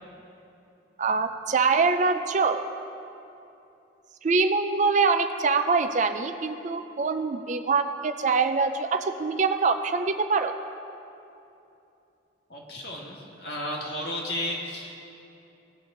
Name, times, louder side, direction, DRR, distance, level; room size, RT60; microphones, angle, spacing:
voice 1, 1.0-2.6 4.2-10.5, right 4 dB, 40° right, 8 dB, 0.4 m, -24 dB
voice 2, 12.5-15.0, left 1 dB, 55° left, -2 dB, 1.8 m, -33 dB
18.0 x 6.1 x 3.8 m, 2.8 s
head